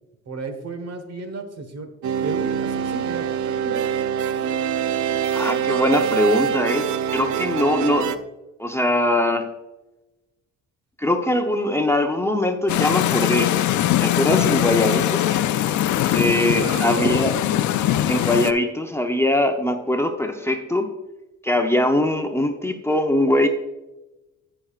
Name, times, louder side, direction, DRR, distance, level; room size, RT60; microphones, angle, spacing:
voice 1, 0.2-1.9 2.2-3.9 16.5-17.2, right 3 dB, 55° right, 7 dB, 1.4 m, -33 dB
sound 1, 2.0-8.2, right 8 dB, 70° right, 0.6 m, -24 dB
voice 2, 5.3-6.9 7.1-8.1 8.6-9.5 11.0-13.5 14.0-15.2 16.1-17.4 18.1-20.9 21.4-23.5, left 1 dB, 10° left, 4 dB, 0.8 m, -21 dB
sound 2, 12.7-18.5, left 12 dB, 75° left, 0.6 m, -21 dB
15.5 x 5.9 x 2.5 m, 1.0 s
cardioid pair, 90°, 30 cm